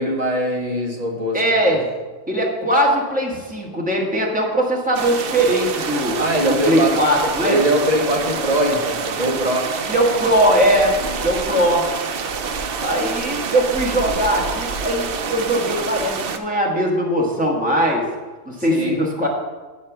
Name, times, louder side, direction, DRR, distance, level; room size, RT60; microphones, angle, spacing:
voice 1, 0.0-1.8 6.2-7.0 7.4-9.7 18.7-19.0, right 1 dB, 30° right, -1 dB, 1.7 m, -21 dB
voice 2, 1.3-1.9 2.3-6.2 6.7-7.6 9.9-11.8 12.8-18.1 18.4-19.3, equal, 5° right, -2 dB, 1.5 m, -20 dB
sound 1, 4.9-16.4, right 5 dB, 55° right, 0.7 m, -27 dB
9.4 x 4.3 x 7.2 m, 1.3 s
omnidirectional pair, 1.4 m